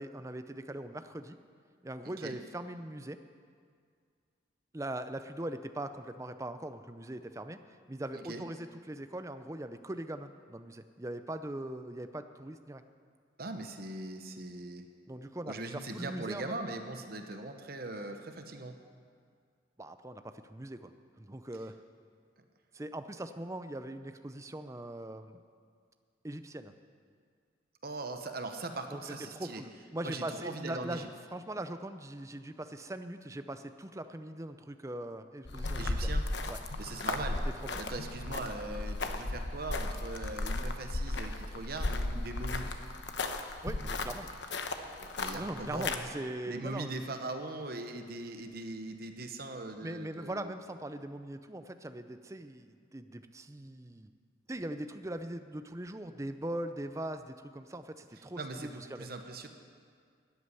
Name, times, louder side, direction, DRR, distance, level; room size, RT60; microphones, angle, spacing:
voice 1, 0.0-1.4 1.8-3.2 4.7-7.6 7.9-12.8 15.1-16.6 19.8-20.9 21.2-21.8 22.7-25.4 26.2-26.7 28.9-36.2 36.5-36.6 37.6-37.8 43.6-44.3 45.3-47.0 49.8-54.1 54.5-59.1, right 1 dB, 15° right, 9 dB, 0.5 m, -41 dB
voice 2, 2.0-2.4 8.1-8.4 13.4-14.9 15.4-18.8 27.8-29.6 30.0-31.1 35.8-36.2 36.8-37.4 37.7-42.7 45.0-45.9 46.5-50.5 58.4-59.5, right 2 dB, 50° right, 6 dB, 1.0 m, -40 dB
sound 1, 35.4-46.0, left 2 dB, 65° left, 0.9 m, -35 dB
13.0 x 8.6 x 9.6 m, 2.1 s
head